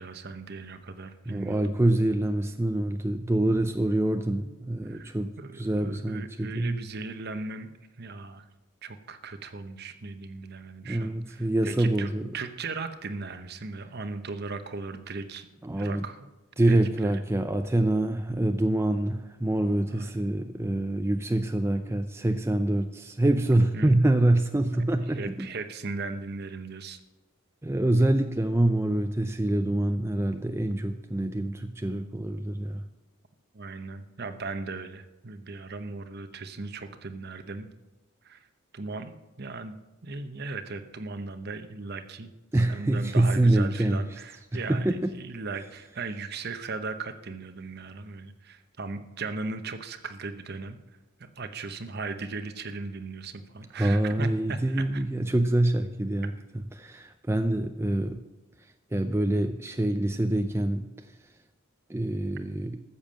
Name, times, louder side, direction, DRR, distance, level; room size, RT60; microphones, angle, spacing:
voice 1, 0.0-1.8 4.8-7.7 8.0-8.4 8.8-15.5 15.8-16.3 16.7-17.2 19.8-20.1 23.7-23.9 25.1-27.0 33.5-37.7 38.2-38.5 38.7-39.8 40.0-50.8 51.2-55.0, right 3 dB, 50° right, 10 dB, 0.9 m, -38 dB
voice 2, 1.3-5.3 5.5-6.8 10.8-12.3 15.6-16.0 16.6-25.5 27.6-32.8 42.5-44.0 44.5-45.1 53.7-56.3 56.7-58.2 58.9-60.9 61.9-62.8, right 1 dB, 10° right, 7 dB, 0.4 m, -25 dB
14.0 x 7.3 x 7.4 m, 1.1 s
head